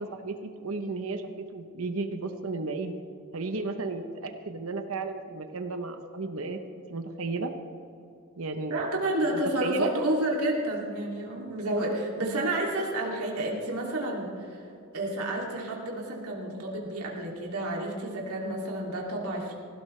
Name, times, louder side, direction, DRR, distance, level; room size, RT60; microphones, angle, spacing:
voice 1, 0.0-2.9 3.3-6.6 6.9-7.5 8.4-8.7 9.6-9.9 11.8-11.9, right 3 dB, 70° right, 7 dB, 0.9 m, -34 dB
voice 2, 8.7-14.7 14.9-19.5, right 1 dB, 85° right, -1 dB, 2.7 m, -30 dB
19.0 x 16.5 x 3.3 m, 2.7 s
head